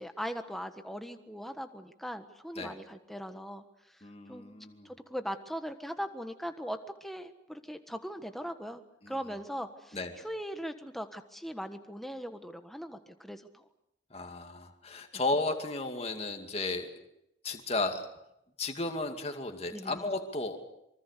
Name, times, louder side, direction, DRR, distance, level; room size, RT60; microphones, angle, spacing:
voice 1, 0.0-3.6 4.3-4.6 4.8-10.0 10.2-13.6 19.7-20.0, equal, ahead, 7 dB, 1.4 m, -40 dB
voice 2, 4.0-4.9 9.0-9.2 9.9-10.1 14.1-17.1 17.4-18.1 18.6-20.6, left 2 dB, 30° left, 5 dB, 2.4 m, -34 dB
25.5 x 24.5 x 6.8 m, 0.82 s
head